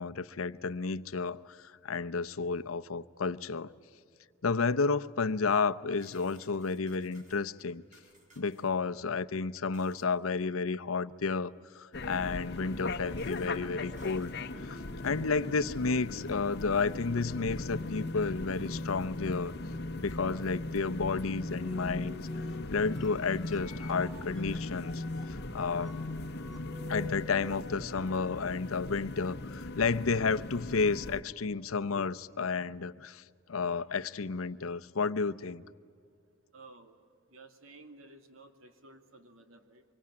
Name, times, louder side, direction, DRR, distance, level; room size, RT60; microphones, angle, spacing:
voice 1, 0.0-3.7 4.4-7.8 8.4-14.3 14.6-14.8 15.0-19.5 19.9-22.2 22.7-25.9 26.9-33.2 33.5-35.6, left 4 dB, 90° left, 0.7 m, -31 dB
sound 1, 6.0-8.7 9.0-9.1 9.4-10.1 12.0-12.1 12.9-14.4 15.0-15.4 15.9-18.2 18.5-18.6 19.1-19.4 19.8-19.9 21.0-22.0, right 1 dB, 40° right, 6.0 m, -63 dB
sound 2, 11.9-31.2, left 2 dB, 55° left, 1.0 m, -38 dB
sound 3, 21.2-27.7, left 2 dB, ahead, 3.2 m, -49 dB
voice 2, 36.5-37.0 37.3-39.8, right 2 dB, 80° right, 2.4 m, -54 dB
25.0 x 24.0 x 9.7 m
head